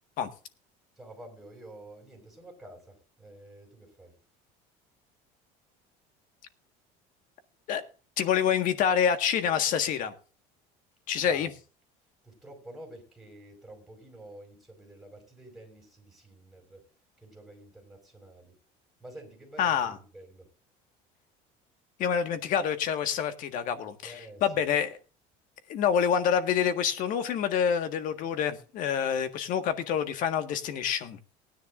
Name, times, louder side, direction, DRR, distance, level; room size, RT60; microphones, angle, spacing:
voice 1, 1.0-4.2 11.2-11.5 12.2-16.9 17.2-18.6 19.0-20.5 24.0-24.7, right 1 dB, ahead, 5.0 m, -49 dB
voice 2, 8.2-10.1 11.1-11.5 19.6-19.9 22.0-24.1 24.4-25.0 25.7-31.2, left 8 dB, 50° left, 1.7 m, -27 dB
19.0 x 10.5 x 2.5 m
cardioid pair, 150°, 17 cm